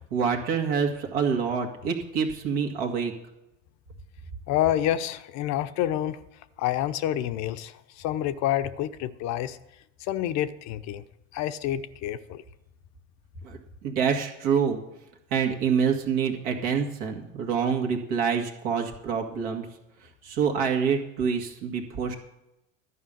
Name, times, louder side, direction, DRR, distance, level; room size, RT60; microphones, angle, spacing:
voice 1, 0.1-3.1 13.4-13.6 13.8-14.8 15.3-19.7 20.2-22.2, right 6 dB, 65° right, 1 dB, 1.9 m, -26 dB
voice 2, 4.5-6.2 6.6-9.6 10.0-11.0 11.3-12.4, left 12 dB, 50° left, 12 dB, 0.7 m, -28 dB
11.5 x 5.5 x 8.8 m, 0.90 s
hypercardioid pair, 85°, 36 cm